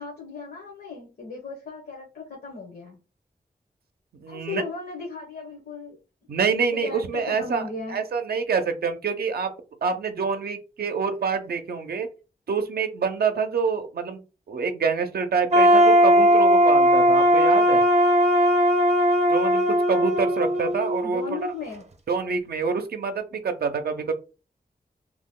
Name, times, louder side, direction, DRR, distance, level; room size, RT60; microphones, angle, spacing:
voice 1, 0.0-3.0 4.3-6.0 6.7-8.0 21.0-21.9, left 4 dB, 90° left, -2 dB, 1.0 m, -36 dB
voice 2, 4.2-4.6 6.3-9.5 9.8-12.1 12.5-14.2 14.5-17.9 19.3-21.5 22.1-24.1, right 5 dB, 90° right, 6 dB, 0.5 m, -26 dB
sound 1, 15.5-21.4, equal, 45° right, 0.6 m, -18 dB
2.9 x 2.1 x 3.6 m, 0.32 s
wide cardioid pair, 70°, 16 cm